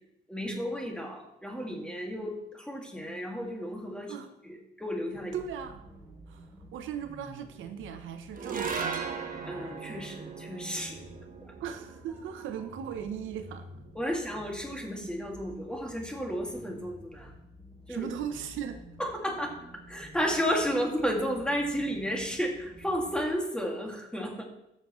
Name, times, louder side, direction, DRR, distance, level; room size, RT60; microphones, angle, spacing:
voice 1, 0.3-4.1 4.8-5.5 9.5-11.0 11.4-11.5 14.0-17.3 17.9-18.1 19.0-19.6 19.9-24.4, equal, 5° left, 1 dB, 2.1 m, -32 dB
Science Fiction Atmosphere, 5.1-23.3, right 1 dB, 10° right, 2.8 m, -50 dB
voice 2, 5.3-5.8 6.3-6.5 6.7-9.1 11.6-13.7 17.9-18.8, right 8 dB, 80° right, 8 dB, 0.8 m, -38 dB
sound 1, 8.3-14.8, right 6 dB, 45° right, 1.3 m, -39 dB
13.0 x 6.9 x 3.1 m, 0.86 s
cardioid pair, 90°, 20 cm